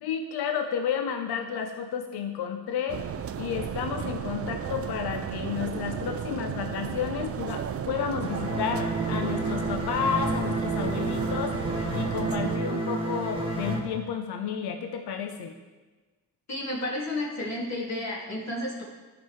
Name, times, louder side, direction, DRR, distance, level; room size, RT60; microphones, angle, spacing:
voice 1, 0.0-3.0 3.4-15.5, left 7 dB, 75° left, 6 dB, 0.7 m, -31 dB
sound 1, 2.9-12.6, right 8 dB, 40° right, 0.4 m, -34 dB
sound 2, 8.2-13.8, right 2 dB, 15° right, 1.7 m, -30 dB
voice 2, 16.5-18.8, left 1 dB, 40° left, -4 dB, 2.4 m, -32 dB
12.5 x 5.3 x 3.2 m, 1.3 s
cardioid pair, 100°, 39 cm